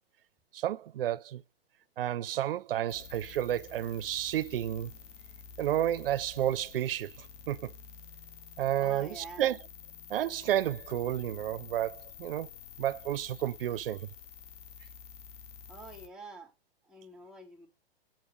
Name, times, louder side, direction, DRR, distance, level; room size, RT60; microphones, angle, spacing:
voice 1, 0.5-1.4 2.0-4.9 5.6-7.7 8.6-9.6 10.1-12.5 12.8-14.1, right 12 dB, 65° right, 0.5 m, -31 dB
sound 1, 2.9-16.1, left 6 dB, 40° left, 2.0 m, -49 dB
voice 2, 8.8-9.5 15.7-16.5 16.9-17.7, right 3 dB, ahead, 3.3 m, -46 dB
8.8 x 4.9 x 4.8 m
hypercardioid pair, 110°, 31 cm